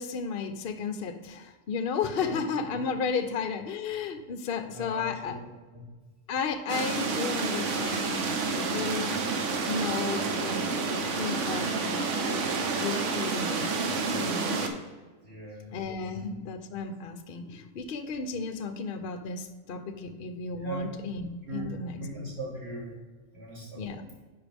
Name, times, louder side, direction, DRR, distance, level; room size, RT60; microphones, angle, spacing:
voice 1, 0.0-5.4 6.3-9.1 9.7-12.5 12.8-13.7 14.1-14.6 15.7-22.0 23.8-24.0, left 5 dB, 55° left, 8 dB, 0.7 m, -33 dB
voice 2, 4.7-5.3 15.2-15.7 16.1-16.3 20.6-20.8 21.5-21.7 22.0-22.9 23.3-23.8, right 1 dB, 45° right, -6 dB, 3.0 m, -39 dB
sound 1, 6.7-14.7, right 4 dB, 60° right, 1.1 m, -29 dB
10.0 x 5.0 x 3.4 m, 1.3 s
omnidirectional pair, 1.6 m